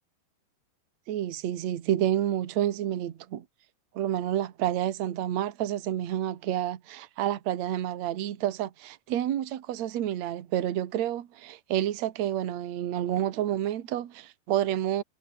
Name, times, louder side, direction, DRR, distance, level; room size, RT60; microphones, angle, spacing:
voice 1, 1.1-3.4 3.9-15.0, right 11 dB, 55° right, 2.1 m, -29 dB
omnidirectional pair, 5.2 m